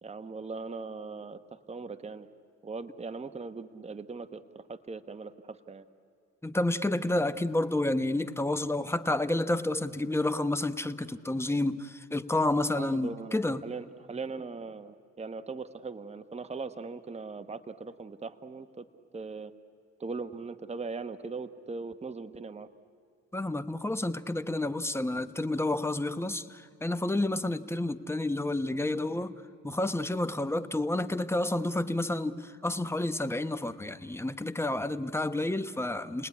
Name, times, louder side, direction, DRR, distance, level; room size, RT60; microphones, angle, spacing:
voice 1, 0.0-2.3 2.6-5.8 12.7-18.8 19.1-19.5 20.0-22.7, right 4 dB, 20° right, 1.1 m, -40 dB
voice 2, 6.4-13.6 23.3-29.3 29.6-36.3, left 2 dB, 10° left, 1.0 m, -30 dB
29.5 x 19.5 x 9.7 m
cardioid pair, 90°, 30 cm